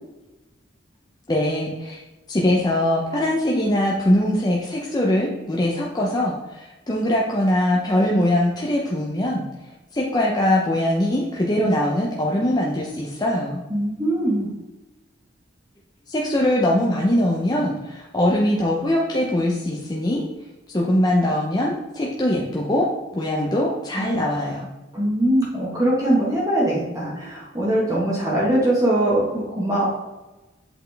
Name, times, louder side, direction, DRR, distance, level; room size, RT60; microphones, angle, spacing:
voice 1, 1.3-2.0 2.3-9.4 9.9-13.6 16.1-20.2 20.7-24.7, left 1 dB, 20° left, -3 dB, 0.6 m, -22 dB
voice 2, 13.7-14.5 24.0-24.2 24.9-29.9, right 1 dB, 20° right, -6 dB, 1.2 m, -22 dB
7.9 x 4.1 x 3.4 m, 1.1 s
head